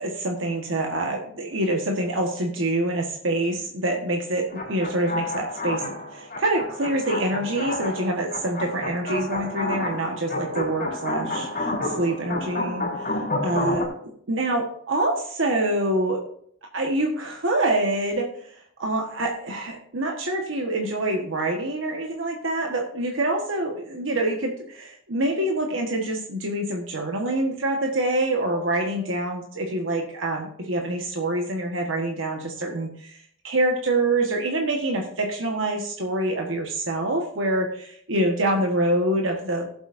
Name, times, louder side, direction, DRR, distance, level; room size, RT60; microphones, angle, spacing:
voice 1, 0.0-13.2 13.4-13.8 14.3-16.2 16.7-39.7, right 1 dB, 70° right, 1 dB, 1.4 m, -26 dB
sound 1, 4.5-13.9, left 2 dB, 45° left, 4.0 m, -30 dB
17.0 x 7.8 x 2.6 m, 0.64 s
head